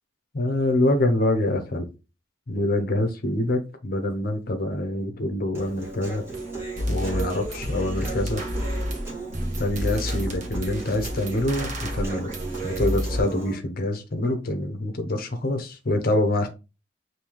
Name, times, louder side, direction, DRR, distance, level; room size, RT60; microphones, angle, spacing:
voice 1, 0.3-1.9 2.5-6.2 6.9-8.4 9.6-12.3 12.6-16.5, left 1 dB, 50° left, 0.8 m, -25 dB
Human voice, 5.5-13.6, right 4 dB, 15° right, 1.8 m, -36 dB
sound 1, 6.3-6.4 6.8-13.2, left 1 dB, 40° right, 1.0 m, -30 dB
5.4 x 2.8 x 3.0 m
head